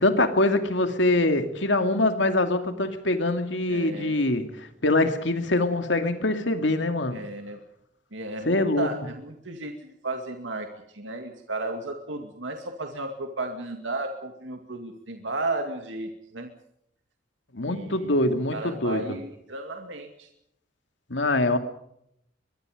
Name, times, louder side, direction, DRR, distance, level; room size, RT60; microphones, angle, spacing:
voice 1, 0.0-7.2 8.5-8.9 17.5-19.0 21.1-21.6, left 2 dB, 80° left, 7 dB, 2.5 m, -24 dB
voice 2, 3.7-4.2 7.1-7.6 8.1-10.7 10.9-16.5 17.6-18.1 18.5-20.3, right 2 dB, 85° right, 5 dB, 2.3 m, -34 dB
23.5 x 23.0 x 5.1 m, 0.76 s
head